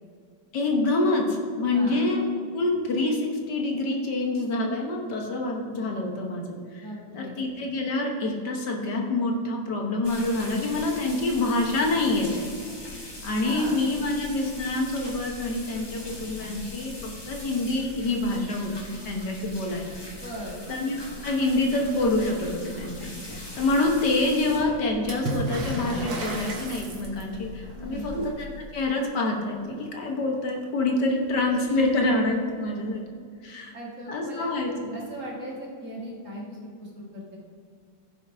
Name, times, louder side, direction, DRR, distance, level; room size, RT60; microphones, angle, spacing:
voice 1, 0.5-2.2 2.5-6.9 7.1-12.4 13.2-18.7 19.0-20.0 20.7-20.9 21.2-33.0 33.4-33.7 34.1-34.9, left 2 dB, 65° left, 1 dB, 1.7 m, -26 dB
voice 2, 6.8-7.4 13.4-13.8 20.2-20.6 27.7-28.1 33.7-34.6 34.9-37.4, equal, 40° right, -4 dB, 2.1 m, -38 dB
sound 1, 10.0-28.3, left 1 dB, 15° left, 0.9 m, -40 dB
Water / Splash splatter, 25.1-27.5 30.8-30.9 31.1-31.9 33.0-33.1, right 2 dB, 75° right, 2.1 m, -33 dB
15.5 x 5.8 x 3.5 m, 2.2 s
omnidirectional pair, 2.0 m